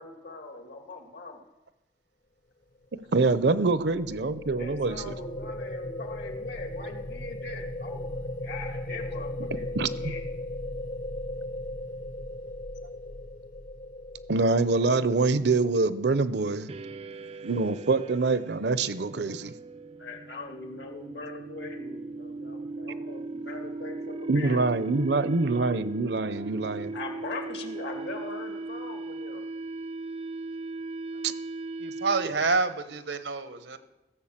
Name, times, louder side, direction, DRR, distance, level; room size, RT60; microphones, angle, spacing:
voice 1, 0.0-1.4 4.6-10.2 20.0-24.6 26.9-29.5 33.7-33.8, left 3 dB, 75° left, 4 dB, 1.9 m, -41 dB
voice 2, 2.9-5.1 9.8-9.9 14.3-16.7 17.4-19.5 24.3-26.9 31.2-31.3, right 3 dB, 70° right, 14 dB, 0.7 m, -25 dB
sound 1, 3.1-15.3, left 1 dB, 50° left, 0.8 m, -37 dB
sound 2, 16.7-32.6, right 3 dB, 35° right, 0.4 m, -38 dB
voice 3, 31.8-33.8, right 4 dB, 90° right, 11 dB, 1.0 m, -28 dB
16.0 x 7.1 x 7.4 m, 1.0 s
head